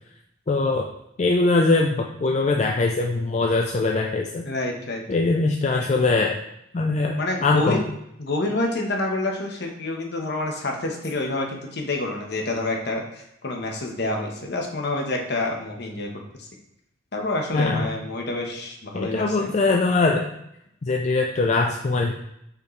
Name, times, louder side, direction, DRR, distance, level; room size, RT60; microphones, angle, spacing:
voice 1, 0.5-0.9 1.2-4.4 5.1-6.4 6.7-7.8 17.5-17.9 18.9-20.3 20.8-22.1, left 3 dB, 35° left, 1 dB, 0.4 m, -22 dB
voice 2, 4.4-5.0 7.1-7.8 8.2-16.5 17.1-19.5, left 2 dB, 60° left, 1 dB, 1.1 m, -28 dB
6.8 x 5.1 x 3.2 m, 0.80 s
head